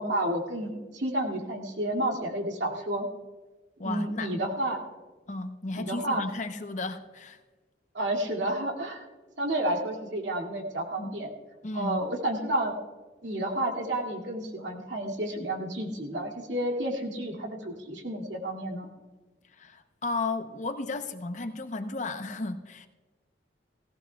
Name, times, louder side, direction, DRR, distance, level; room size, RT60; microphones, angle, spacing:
voice 1, 0.0-3.1 3.8-4.8 5.8-6.2 7.9-9.1 9.4-11.3 11.7-12.7 13.2-18.9, right 1 dB, 80° right, 0 dB, 2.3 m, -30 dB
voice 2, 3.8-4.3 5.3-7.4 11.0-11.1 11.6-12.0 19.5-22.9, left 3 dB, 40° left, 8 dB, 0.7 m, -34 dB
18.5 x 16.0 x 2.3 m, 1.3 s
head